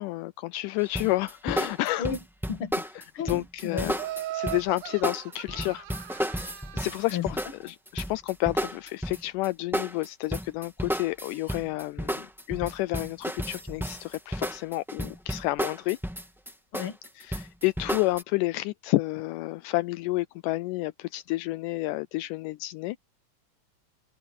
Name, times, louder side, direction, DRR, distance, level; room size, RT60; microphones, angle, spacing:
voice 1, 0.0-2.1 3.3-4.0 4.3-16.0 17.2-23.0, left 19 dB, 80° left, 2.0 m, -30 dB
sound 1, 0.9-9.5 9.7-18.2, equal, ahead, 0.8 m, -32 dB
voice 2, 2.5-4.0 7.1-7.3 16.7-17.0, left 7 dB, 45° left, 2.3 m, -33 dB
Laughter, 3.9-7.1, right 14 dB, 75° right, 2.4 m, -38 dB
open air
omnidirectional pair, 3.8 m